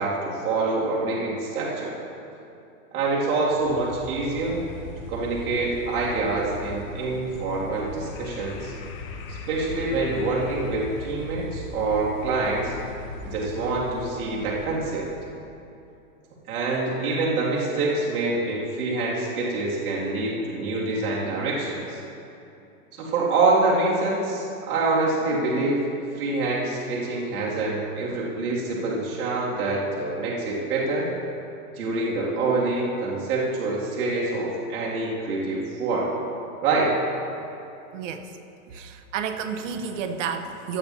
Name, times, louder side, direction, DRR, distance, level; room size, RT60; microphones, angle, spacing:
voice 1, 0.0-2.0 2.9-4.6 5.1-8.7 9.3-12.7 13.2-15.1 16.5-22.0 22.9-25.9 26.1-31.1 31.8-36.1 36.6-37.0, right 3 dB, 70° right, -5 dB, 2.6 m, -26 dB
sound 1, 3.4-15.4, left 3 dB, 20° left, 0.5 m, -39 dB
voice 2, 37.9-38.4 38.7-40.8, right 6 dB, 55° right, 8 dB, 0.9 m, -31 dB
17.5 x 10.5 x 2.8 m, 2.7 s
supercardioid pair, 155°, 45 cm